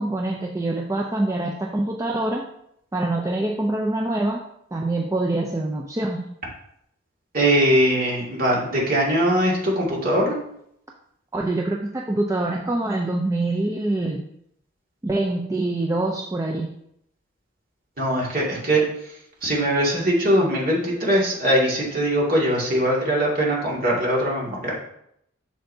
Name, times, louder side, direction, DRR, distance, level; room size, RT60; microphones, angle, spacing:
voice 1, 0.0-2.5 2.9-4.4 4.7-6.3 11.3-14.2 15.0-16.7, right 2 dB, 15° right, 0 dB, 0.4 m, -25 dB
voice 2, 7.3-10.4 18.0-18.8 19.4-24.7, right 1 dB, 45° right, -4 dB, 2.1 m, -21 dB
7.8 x 6.5 x 2.7 m, 0.75 s
head